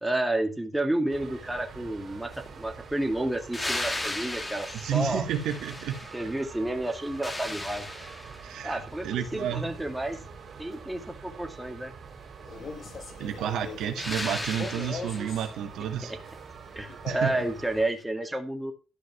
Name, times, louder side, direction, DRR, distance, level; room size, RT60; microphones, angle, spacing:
voice 1, 0.0-2.3 2.6-5.2 6.1-7.9 8.6-10.2 10.6-11.9 16.1-16.2 16.8-18.7, right 1 dB, 10° right, 2.2 m, -30 dB
sound 1, 1.1-17.9, right 5 dB, 60° right, 3.5 m, -45 dB
sound 2, 3.5-6.4 6.8-8.6 14.0-15.4 18.0-18.1, left 2 dB, 15° left, 1.6 m, -36 dB
voice 2, 4.7-6.0 8.4-9.7 13.2-16.1 17.1-17.3, right 9 dB, 80° right, 1.9 m, -31 dB
Male speech man speaking, 12.4-15.5 16.9-17.5, left 4 dB, 55° left, 3.1 m, -41 dB
12.5 x 5.1 x 6.2 m
cardioid pair, 70°, 0 cm